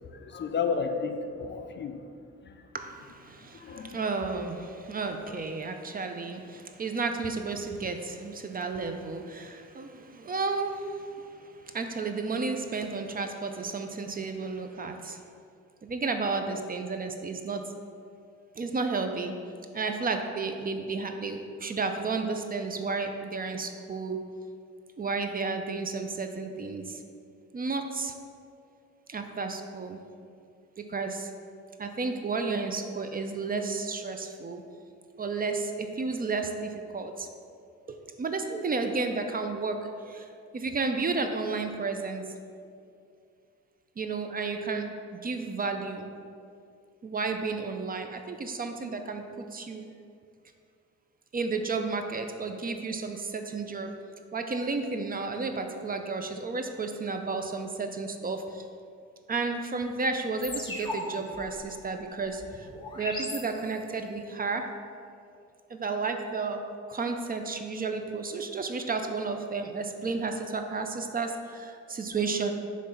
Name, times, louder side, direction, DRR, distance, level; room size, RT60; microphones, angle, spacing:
voice 1, 0.1-2.0 2.4-2.6 3.5-4.0 5.2-5.4, left 5 dB, 40° left, 6 dB, 0.5 m, -32 dB
voice 2, 2.7-15.2 15.8-17.7 18.6-19.3 19.7-24.2 25.0-27.0 27.5-28.1 29.1-30.0 30.8-31.3 31.8-34.6 35.2-37.3 38.2-40.3 40.5-42.3 44.0-46.1 47.0-49.8 51.3-53.9 54.3-58.6 59.3-62.7 62.9-64.7 65.7-66.6 66.9-72.5, right 4 dB, 30° right, 6 dB, 0.5 m, -32 dB
sound 1, 60.4-64.1, left 2 dB, 15° left, 1.2 m, -39 dB
6.9 x 3.2 x 5.4 m, 2.4 s
cardioid pair, 90°, 30 cm